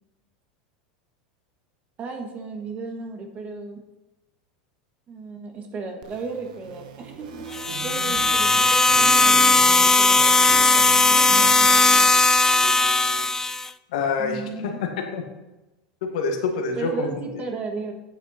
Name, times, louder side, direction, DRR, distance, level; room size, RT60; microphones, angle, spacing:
voice 1, 2.0-3.8 5.1-7.4 7.8-8.7 9.0-12.1 14.2-14.8 16.8-17.9, right 4 dB, 35° right, 4 dB, 1.5 m, -35 dB
sound 1, 6.0-13.3, right 5 dB, 75° right, 1.2 m, -37 dB
sound 2, 7.5-13.7, left 3 dB, 10° left, 0.4 m, -18 dB
voice 2, 13.9-15.2 16.0-17.1, left 5 dB, 75° left, 3 dB, 1.7 m, -26 dB
9.0 x 7.5 x 4.2 m, 1.1 s
hypercardioid pair, 100°, 4 cm